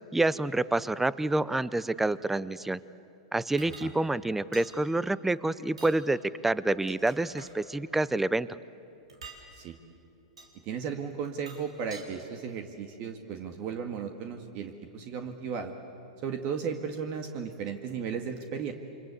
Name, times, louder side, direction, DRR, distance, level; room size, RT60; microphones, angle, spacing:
voice 1, 0.1-2.8 3.3-8.5, right 2 dB, 5° right, 18 dB, 0.7 m, -28 dB
sound 1, 3.6-3.9 4.5-4.7 5.7-6.0 6.7-7.6 9.1-9.4 10.4-10.5 11.2-12.1, right 4 dB, 85° right, 4.3 m, -48 dB
voice 2, 10.6-15.7 16.2-18.7, right 6 dB, 45° right, 5 dB, 1.9 m, -35 dB
28.5 x 25.5 x 8.3 m, 2.8 s
hypercardioid pair, 105°, 3 cm